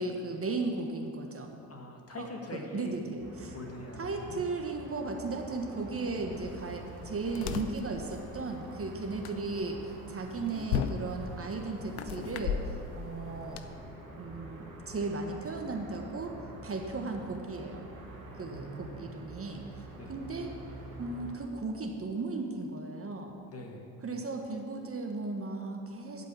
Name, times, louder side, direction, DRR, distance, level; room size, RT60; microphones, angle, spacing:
voice 1, 0.0-1.6 2.2-3.6 4.0-13.6 14.2-17.9 18.4-19.8 20.1-20.5 21.0-23.4 24.0-26.3, right 3 dB, 30° right, 3 dB, 1.3 m, -36 dB
voice 2, 1.7-3.0 3.5-4.4 18.2-18.9 20.0-20.1 23.5-23.9, left 1 dB, 35° left, 1 dB, 2.0 m, -43 dB
sound 1, 3.2-21.3, right 1 dB, 90° right, 2.5 m, -47 dB
sound 2, 6.3-13.6, left 7 dB, 80° left, 0.6 m, -38 dB
11.5 x 5.3 x 8.6 m, 2.5 s
hypercardioid pair, 50°, 43 cm